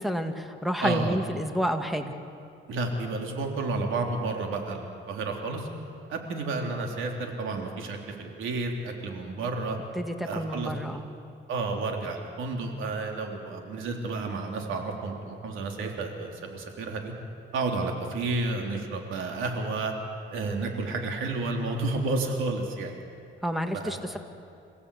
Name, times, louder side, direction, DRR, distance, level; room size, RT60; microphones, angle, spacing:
voice 1, 0.0-2.1 10.0-11.1 23.4-24.2, equal, ahead, 6 dB, 2.0 m, -29 dB
voice 2, 0.8-1.2 2.7-5.7 6.1-9.8 10.2-11.0 11.5-17.1 17.5-19.9 20.3-22.9 23.7-24.0, right 3 dB, 80° right, 2 dB, 3.5 m, -31 dB
27.5 x 16.5 x 8.5 m, 2.5 s
cardioid pair, 90°, 20 cm